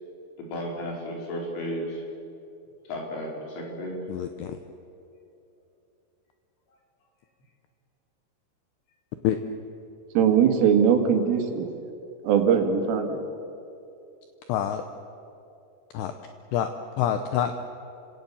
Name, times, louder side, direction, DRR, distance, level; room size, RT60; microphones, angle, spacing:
voice 1, 0.4-2.0 2.9-4.0, equal, 70° left, -1 dB, 6.4 m, -33 dB
voice 2, 4.1-4.6 9.2-9.4 14.5-14.8 15.9-16.1 16.5-16.7 17.0-17.5, left 10 dB, 85° left, 7 dB, 2.3 m, -26 dB
voice 3, 10.2-11.7 12.2-13.2, right 7 dB, 75° right, 5 dB, 4.3 m, -21 dB
30.0 x 17.5 x 7.2 m, 2.7 s
omnidirectional pair, 6.0 m